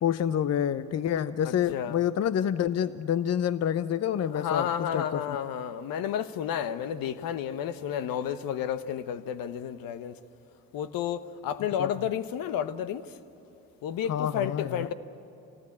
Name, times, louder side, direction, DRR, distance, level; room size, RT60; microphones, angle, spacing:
voice 1, 0.0-5.4 11.8-11.9 14.1-14.9, left 9 dB, 45° left, 0.7 m, -28 dB
voice 2, 1.4-2.0 4.3-10.1 10.7-13.1 13.8-14.9, left 9 dB, 70° left, 1.2 m, -31 dB
26.5 x 19.0 x 8.6 m
supercardioid pair, 65°, 36 cm